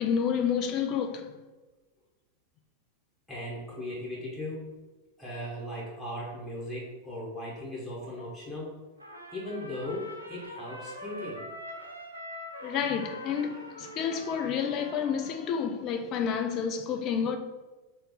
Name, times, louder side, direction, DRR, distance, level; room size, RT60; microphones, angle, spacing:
voice 1, 0.0-1.3 12.6-17.4, left 7 dB, 35° left, 0.5 m, -29 dB
voice 2, 3.3-4.9 5.2-8.9 9.3-11.5, left 1 dB, 5° left, 1.2 m, -38 dB
Trumpet, 9.0-15.7, equal, 85° right, 0.7 m, -43 dB
3.2 x 3.0 x 3.9 m
figure-of-eight pair, 90°, 0 cm